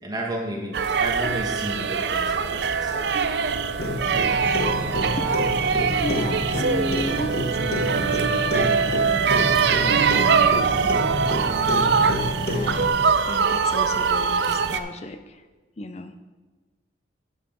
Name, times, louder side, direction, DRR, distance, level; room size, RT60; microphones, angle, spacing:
voice 1, 0.0-3.1 4.8-5.0, right 1 dB, 20° right, -1 dB, 1.4 m, -32 dB
sound 1, 0.7-14.8, right 5 dB, 65° right, 0.5 m, -22 dB
Clock, 3.8-12.9, left 1 dB, 55° left, 1.1 m, -29 dB
voice 2, 6.0-9.4 9.8-11.4 12.5-15.4 15.8-16.1, left 1 dB, 35° left, 9 dB, 0.5 m, -34 dB
9.4 x 5.7 x 5.4 m, 1.2 s
head